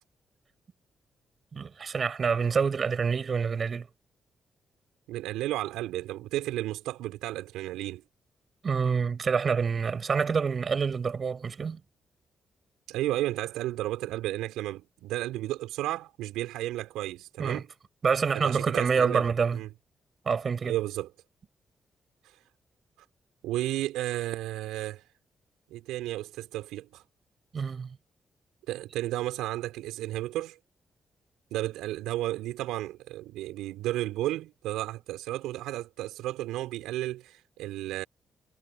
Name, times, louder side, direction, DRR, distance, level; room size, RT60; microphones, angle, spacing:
voice 1, 1.5-3.9 8.6-11.8 17.4-17.6 18.0-19.6 20.3-20.7 27.5-28.0, right 5 dB, 50° right, 7.0 m, -27 dB
voice 2, 5.1-8.0 12.9-17.7 18.3-19.3 19.5-19.7 20.7-21.1 22.2-22.4 23.4-25.0 25.7-27.0 28.7-30.6 31.5-38.0, right 15 dB, 80° right, 5.0 m, -33 dB
hypercardioid pair, 40°, 0 cm